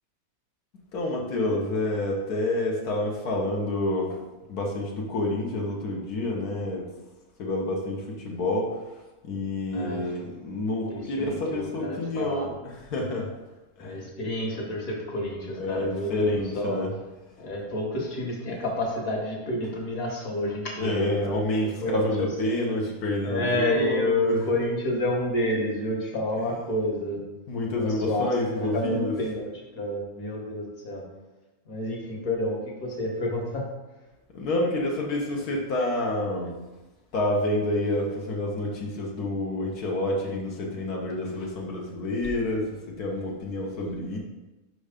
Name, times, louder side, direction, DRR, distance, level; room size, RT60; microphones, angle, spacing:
voice 1, 0.9-4.2 4.5-6.9 7.4-13.3 13.8-14.0 15.5-16.9 17.4-17.5 20.8-24.4 27.5-29.2 34.3-36.6 37.1-44.2, left 1 dB, 90° left, -1 dB, 1.6 m, -28 dB
voice 2, 9.7-10.0 10.9-12.5 13.8-16.8 17.4-21.2 21.8-22.3 23.2-27.2 27.8-28.3 28.6-29.5 29.8-31.0 31.7-33.6, left 1 dB, 65° left, -1 dB, 2.0 m, -29 dB
5.5 x 4.7 x 5.0 m, 1.1 s
omnidirectional pair, 1.6 m